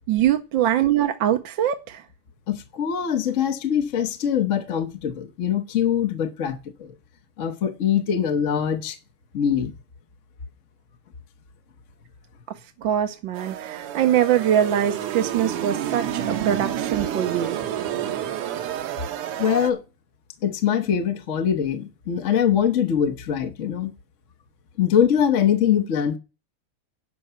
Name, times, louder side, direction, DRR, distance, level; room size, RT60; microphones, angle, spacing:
voice 1, 0.1-2.0 12.8-17.6, right 10 dB, 65° right, 1.5 m, -23 dB
voice 2, 2.5-6.9 7.4-9.0 9.3-9.7 19.4-19.8 20.4-23.9 24.8-26.2, left 8 dB, 50° left, 1.0 m, -23 dB
sound 1, 13.3-19.7, right 10 dB, 90° right, 1.9 m, -29 dB
11.5 x 6.0 x 7.9 m
omnidirectional pair, 2.4 m